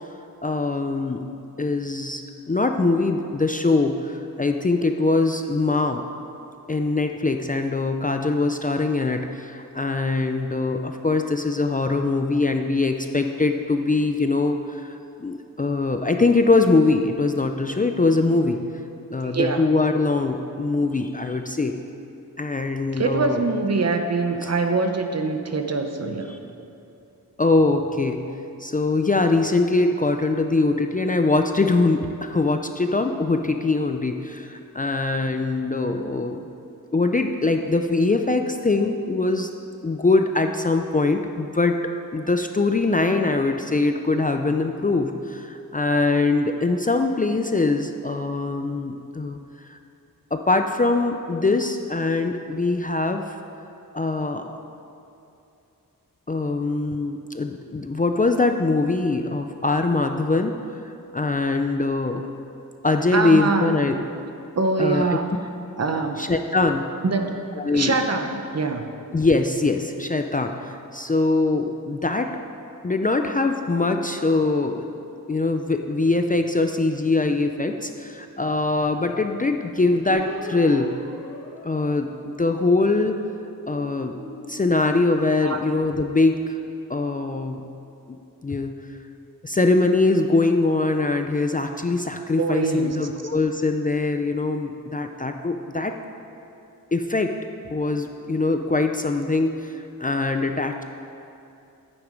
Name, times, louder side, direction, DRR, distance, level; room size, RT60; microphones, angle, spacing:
voice 1, 0.4-1.2 1.6-2.2 2.5-6.0 6.7-18.6 19.1-21.8 22.4-23.4 24.4-24.5 26.3-26.4 27.4-28.2 28.6-36.5 36.9-39.5 39.8-41.8 42.1-49.4 49.7-49.8 50.3-53.2 53.9-54.6 56.3-60.6 61.1-62.3 62.8-64.0 64.8-65.2 66.2-66.9 67.6-68.0 69.1-72.3 72.8-74.9 75.3-80.9 81.6-83.2 83.7-84.1 84.5-86.6 86.9-87.6 88.1-88.2 88.4-88.8 89.4-96.0 96.9-97.4 97.7-100.8, left 3 dB, 25° left, 5 dB, 0.5 m, -22 dB
voice 2, 19.2-19.6 23.0-26.3 63.1-63.7 64.5-65.5 65.8-66.2 67.0-67.4 67.7-68.9 85.4-85.6 92.4-93.0, right 3 dB, 45° right, 5 dB, 0.9 m, -24 dB
sound 1, 80.1-82.8 83.4-85.9, left 1 dB, 40° left, 1.8 m, -39 dB
10.5 x 9.6 x 5.1 m, 2.7 s
wide cardioid pair, 110°, 36 cm